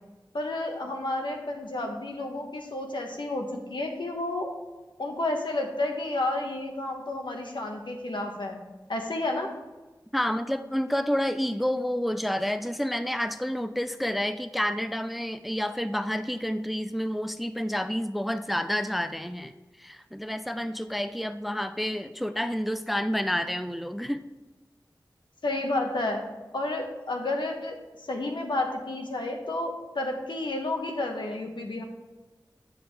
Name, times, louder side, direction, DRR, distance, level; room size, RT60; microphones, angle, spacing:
voice 1, 0.3-4.5 5.0-8.6 8.9-9.5 25.4-26.3 26.5-31.8, left 2 dB, 80° left, 2 dB, 1.1 m, -31 dB
voice 2, 10.1-19.5 19.8-24.2, equal, ahead, 10 dB, 0.4 m, -29 dB
7.7 x 6.8 x 3.4 m, 1.2 s
wide cardioid pair, 45°, 8 cm